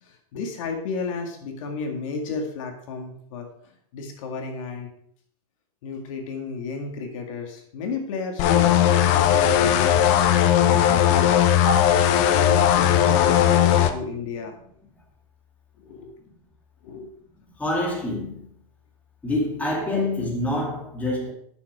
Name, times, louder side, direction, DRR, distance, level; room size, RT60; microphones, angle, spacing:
voice 1, 0.0-3.5 3.9-4.9 5.8-10.2 10.6-11.4 12.2-14.6 15.8-16.1 16.8-17.1 19.9-20.0, left 4 dB, 60° left, 2.1 m, -32 dB
sound 1, 8.4-13.9, left 10 dB, 40° left, 0.8 m, -18 dB
voice 2, 17.6-18.5 19.2-21.3, left 1 dB, 5° left, 2.1 m, -26 dB
10.0 x 6.9 x 4.9 m
supercardioid pair, 155°, 19 cm